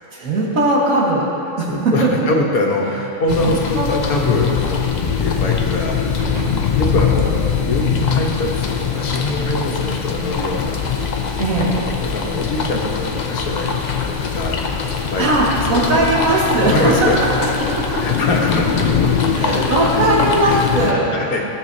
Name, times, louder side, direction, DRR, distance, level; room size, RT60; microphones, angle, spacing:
voice 1, 0.1-1.3 1.6-2.1 3.4-3.9 11.4-11.8 15.2-17.1 17.8-18.0 19.3-21.5, right 2 dB, 70° right, -4 dB, 1.8 m, -19 dB
voice 2, 1.7-4.9 5.2-6.0 6.7-10.8 12.0-14.6 15.1-15.3 15.9-16.1 16.6-17.2 18.0-19.4 19.9-20.0 20.4-20.6 20.9-21.4, left 1 dB, 85° left, 0 dB, 1.5 m, -23 dB
sound 1, 3.3-20.9, left 6 dB, 60° left, 0.4 m, -21 dB
sound 2, 6.2-8.7, right 4 dB, 35° right, 0.9 m, -36 dB
15.0 x 6.8 x 2.7 m, 2.8 s
omnidirectional pair, 1.5 m